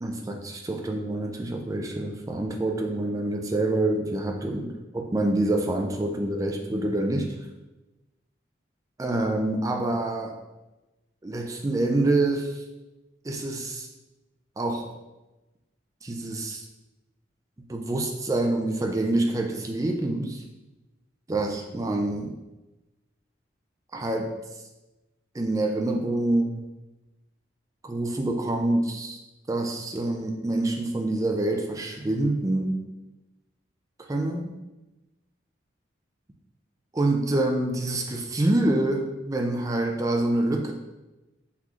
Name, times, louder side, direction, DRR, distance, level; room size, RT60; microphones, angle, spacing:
voice 1, 0.0-7.3 9.0-10.4 11.2-12.6 13.2-13.9 14.6-14.9 16.0-16.6 17.7-20.4 21.3-22.4 23.9-24.3 25.3-26.6 27.8-29.2 29.5-32.8 34.0-34.6 36.9-40.7, right 2 dB, 15° right, 2 dB, 0.3 m, -26 dB
5.6 x 3.1 x 2.4 m, 1.1 s
head